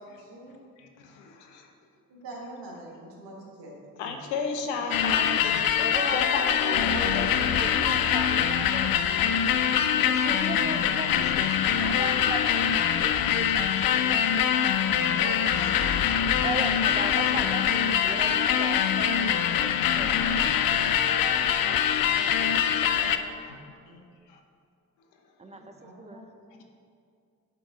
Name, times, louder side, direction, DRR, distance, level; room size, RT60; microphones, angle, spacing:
voice 1, 0.0-0.6 2.1-3.7 4.7-5.0 6.7-7.6 15.1-16.3 17.2-17.3 22.6-23.4 23.9-24.0 25.5-26.2, right 1 dB, 60° right, -2 dB, 1.7 m, -42 dB
voice 2, 0.8-1.7 4.0-5.6 6.1-7.6 22.2-23.8 24.3-24.4, left 4 dB, 80° left, 3 dB, 0.8 m, -35 dB
sound 1, 4.9-23.2, left 9 dB, 50° left, 0.5 m, -24 dB
voice 3, 5.8-6.9 7.3-9.5 10.0-11.5 11.8-13.9 16.4-20.1 20.3-20.8 25.4-26.2, right 2 dB, 15° right, 6 dB, 0.7 m, -37 dB
8.1 x 3.9 x 5.0 m, 2.3 s
hypercardioid pair, 40°, 47 cm